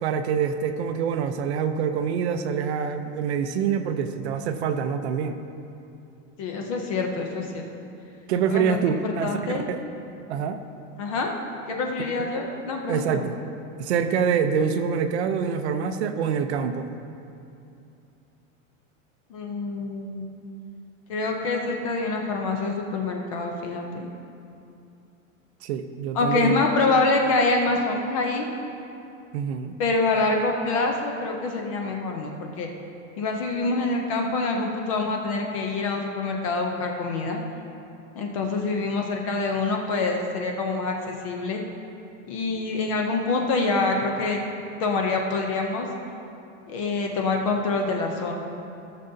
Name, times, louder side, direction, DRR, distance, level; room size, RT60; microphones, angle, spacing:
voice 1, 0.0-5.4 8.3-9.8 10.3-10.6 12.9-13.4 13.8-16.9 25.6-26.6 29.3-29.7, right 7 dB, 55° right, 9 dB, 0.6 m, -25 dB
voice 2, 6.4-7.7 8.5-9.7 11.0-11.3 11.7-13.3 19.3-20.4 21.1-24.1 26.1-28.5 29.8-32.7 33.2-37.4 38.2-41.6 42.3-44.4 44.8-45.9 46.7-48.3, left 3 dB, 25° left, 2 dB, 0.4 m, -26 dB
16.0 x 6.8 x 2.6 m, 2.7 s
supercardioid pair, 175°, 40 cm